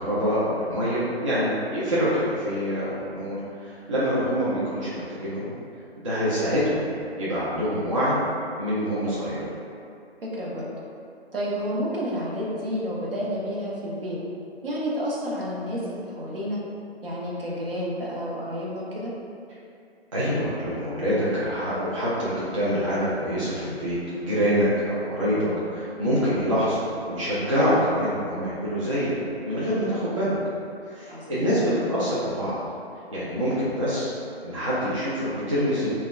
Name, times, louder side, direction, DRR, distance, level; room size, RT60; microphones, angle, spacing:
voice 1, 0.0-5.5 6.0-6.9 7.2-8.2 8.6-9.4 20.1-29.1 29.4-30.4 30.9-32.6 33.1-34.1 34.4-35.9, equal, 30° right, -10 dB, 0.4 m, -25 dB
voice 2, 10.2-10.7 11.3-14.2 14.6-16.6 17.0-19.1 31.1-31.6, equal, 60° right, -5 dB, 0.7 m, -30 dB
3.5 x 2.1 x 2.2 m, 2.5 s
figure-of-eight pair, 140°, 32 cm